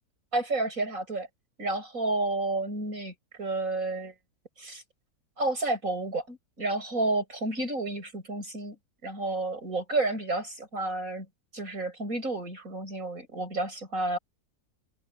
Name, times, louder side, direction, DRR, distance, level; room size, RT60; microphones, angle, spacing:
voice 1, 0.3-1.3 1.6-4.1 4.6-4.8 5.4-8.8 9.0-11.3 11.5-14.2, right 2 dB, 55° right, 8.3 m, -31 dB
omnidirectional pair, 1.7 m